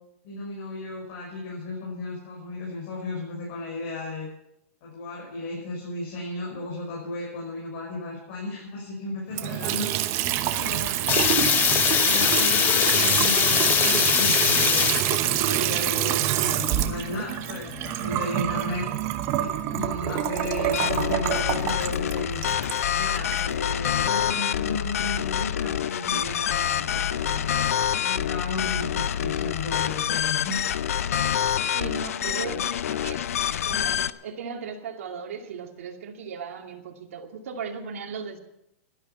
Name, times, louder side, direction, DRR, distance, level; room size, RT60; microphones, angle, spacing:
voice 1, 0.2-4.3 4.8-11.4 12.0-14.9 15.2-18.9 19.4-22.4 22.9-27.5 28.0-30.8 32.2-32.6, left 3 dB, 50° left, -3 dB, 5.8 m, -34 dB
Water tap faucet / Sink (filling or washing) / Trickle dribble, 9.3-23.4, right 13 dB, 35° right, 1.0 m, -26 dB
sound 1, 11.1-19.9, left 11 dB, 25° left, 0.5 m, -23 dB
sound 2, 20.7-34.1, left 9 dB, 75° left, 0.6 m, -26 dB
voice 2, 31.7-33.3 33.6-38.4, right 6 dB, 65° right, 2 dB, 2.6 m, -37 dB
12.0 x 11.5 x 7.0 m, 0.83 s
hypercardioid pair, 135°, 8 cm